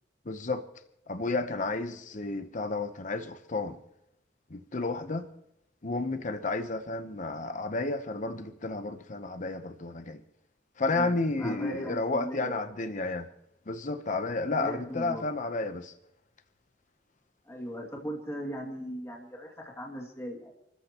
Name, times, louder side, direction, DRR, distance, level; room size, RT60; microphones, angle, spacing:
voice 1, 0.2-0.6 1.1-3.8 4.5-5.3 5.8-10.2 10.8-13.3 13.7-15.9, left 3 dB, 45° left, 0.9 m, -32 dB
voice 2, 11.4-12.6 14.5-15.3 17.5-20.5, equal, 15° left, 2.4 m, -38 dB
30.0 x 14.0 x 3.0 m
head